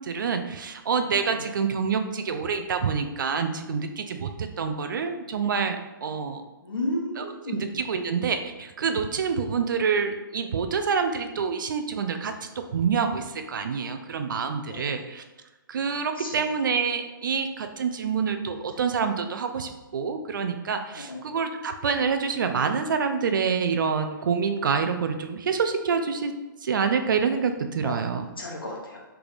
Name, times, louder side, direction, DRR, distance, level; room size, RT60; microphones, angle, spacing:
voice 1, 0.0-6.4 7.2-15.2 15.7-26.3 26.6-28.3, right 6 dB, 65° right, 7 dB, 0.4 m, -27 dB
voice 2, 6.6-7.7 14.7-15.0 16.2-16.4 20.9-21.2 27.8-27.9 28.4-29.0, left 1 dB, 80° left, -2 dB, 1.1 m, -33 dB
3.4 x 3.3 x 2.5 m, 1.1 s
figure-of-eight pair, 130°, 12 cm